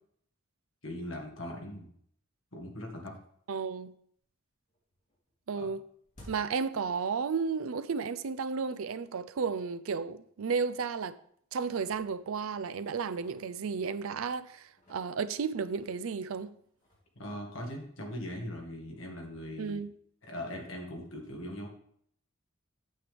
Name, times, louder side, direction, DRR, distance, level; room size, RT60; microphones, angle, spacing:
voice 1, 0.8-1.9 2.5-3.1 5.6-5.7 17.2-19.8 20.2-21.7, left 1 dB, 70° left, 1.9 m, -40 dB
voice 2, 3.5-3.9 5.5-5.9 6.3-11.2 11.5-16.5 19.6-19.9, right 5 dB, 85° right, 0.5 m, -33 dB
sound 1, 3.8-4.4 4.7-7.6 7.9-8.0 8.8-8.9 9.4-9.5 9.8-10.0 10.7-11.2 11.5-14.2 14.6-18.5, left 1 dB, 35° left, 3.1 m, -60 dB
8.5 x 7.7 x 3.4 m
head